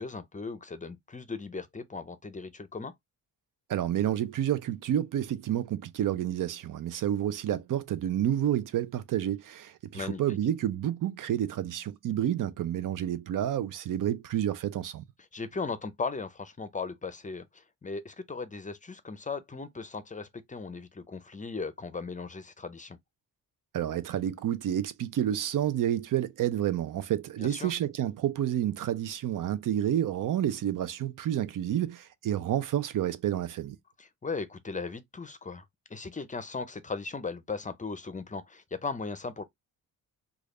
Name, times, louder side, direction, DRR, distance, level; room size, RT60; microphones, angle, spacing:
voice 1, 0.0-2.9 9.9-10.2 15.3-23.0 27.4-27.7 34.0-39.4, left 4 dB, 25° left, 0.5 m, -37 dB
voice 2, 3.7-15.0 23.7-33.8, right 11 dB, 65° right, 0.6 m, -29 dB
3.3 x 2.4 x 3.7 m
cardioid pair, 105°, 34 cm